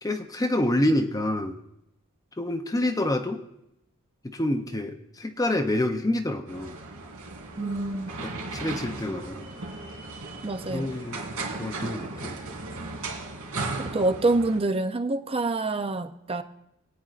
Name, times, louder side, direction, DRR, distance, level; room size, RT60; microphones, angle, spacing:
voice 1, 0.0-1.6 2.4-3.4 4.2-6.8 8.2-9.5 10.7-11.2 11.6-12.4, left 1 dB, 15° left, 6 dB, 0.6 m, -27 dB
sound 1, 6.5-14.6, right 3 dB, 80° right, 3.0 m, -36 dB
voice 2, 7.6-8.2 10.4-10.9 13.9-16.4, right 2 dB, 25° right, 9 dB, 0.6 m, -26 dB
23.5 x 9.2 x 2.5 m, 0.85 s
head